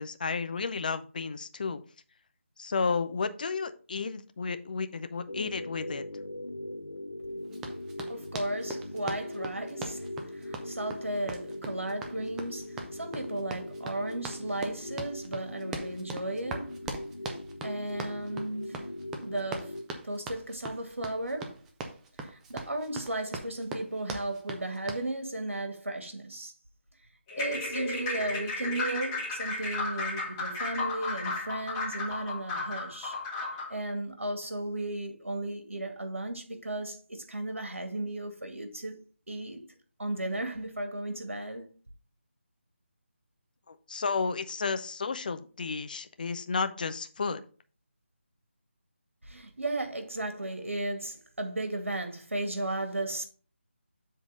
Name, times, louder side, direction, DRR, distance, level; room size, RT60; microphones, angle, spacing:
voice 1, 0.0-1.8 2.6-6.0 43.7-47.4, left 4 dB, 40° left, 0.7 m, -32 dB
sound 1, 5.3-19.8, left 1 dB, 75° left, 1.2 m, -40 dB
Run, 7.5-25.1, right 3 dB, 5° right, 0.3 m, -41 dB
voice 2, 8.1-16.8 17.6-18.9 19.2-19.7 20.0-21.6 22.3-26.5 27.4-33.2 33.7-39.0 39.3-39.6 40.0-41.7 49.2-53.3, right 1 dB, 80° right, 2.1 m, -35 dB
sound 2, 27.3-33.8, left 3 dB, 15° left, 1.8 m, -34 dB
7.4 x 3.9 x 5.1 m
figure-of-eight pair, 160°, 7 cm